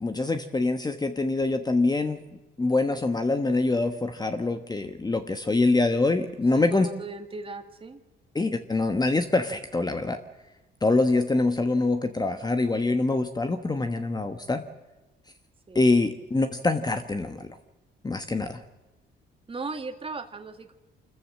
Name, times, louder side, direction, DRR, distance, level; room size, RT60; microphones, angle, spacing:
voice 1, 0.0-2.3 2.6-6.9 8.3-10.2 10.8-14.6 15.7-17.5 18.0-18.6, left 3 dB, 20° left, 7 dB, 1.2 m, -25 dB
voice 2, 6.5-8.0 15.7-15.9 19.5-20.7, right 4 dB, 25° right, 6 dB, 2.0 m, -37 dB
25.5 x 14.0 x 7.4 m, 1.1 s
cardioid pair, 90°, 20 cm